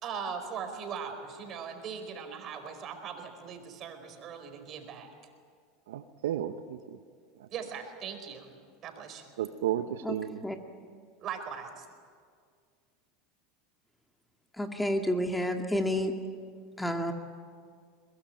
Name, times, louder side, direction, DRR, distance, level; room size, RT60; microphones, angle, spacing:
voice 1, 0.0-5.1 7.5-8.5 8.8-9.3 11.2-11.9, right 6 dB, 45° right, 7 dB, 4.7 m, -40 dB
voice 2, 5.9-7.0 7.4-7.5 9.4-10.4, right 11 dB, 80° right, 10 dB, 0.9 m, -33 dB
voice 3, 14.6-16.1 16.8-17.1, left 1 dB, 5° left, 4 dB, 2.2 m, -29 dB
22.5 x 21.5 x 9.0 m, 2.1 s
hypercardioid pair, 90°, 0 cm